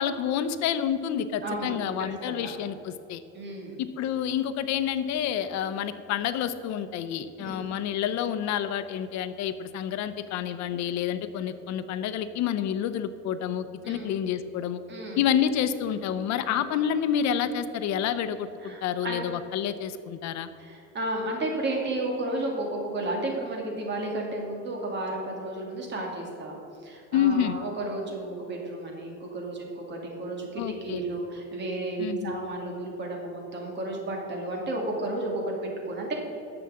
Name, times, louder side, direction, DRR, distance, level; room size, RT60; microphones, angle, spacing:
voice 1, 0.0-3.2 3.8-14.8 15.2-20.5 27.1-27.6 30.6-31.0 32.0-32.3, left 9 dB, 65° left, 12 dB, 0.7 m, -28 dB
voice 2, 1.4-1.8 2.2-2.5 3.3-3.8 7.4-7.6 13.8-14.1 14.9-15.2 16.5-16.6 18.6-19.2 20.6-26.6 26.8-36.1, right 2 dB, 35° right, 0 dB, 2.4 m, -33 dB
11.0 x 7.0 x 7.6 m, 2.8 s
cardioid pair, 170°, 30 cm